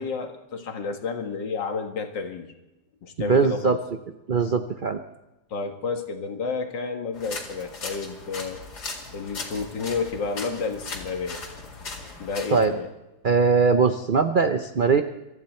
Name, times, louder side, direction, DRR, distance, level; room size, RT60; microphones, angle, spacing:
voice 1, 0.0-2.5 3.0-3.8 5.5-8.6 9.1-11.4 12.2-12.9, left 4 dB, 75° left, 5 dB, 2.2 m, -31 dB
voice 2, 3.2-3.8 4.3-5.0 12.5-12.7 13.2-15.0, right 5 dB, 65° right, 8 dB, 0.5 m, -21 dB
sound 1, 7.1-12.7, left 3 dB, 60° left, 2.7 m, -38 dB
23.5 x 14.0 x 4.4 m, 0.99 s
omnidirectional pair, 2.0 m